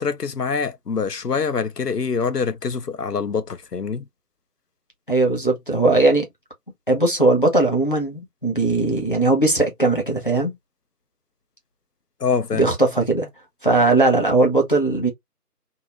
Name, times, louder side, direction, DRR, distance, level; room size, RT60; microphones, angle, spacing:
voice 1, 0.0-4.0 12.2-12.6, left 5 dB, 85° left, 0.7 m, -25 dB
voice 2, 5.1-6.2 6.9-10.5 12.5-13.3 13.6-15.1, right 2 dB, 35° left, 0.9 m, -19 dB
2.8 x 2.4 x 2.8 m
figure-of-eight pair, 170°, 46 cm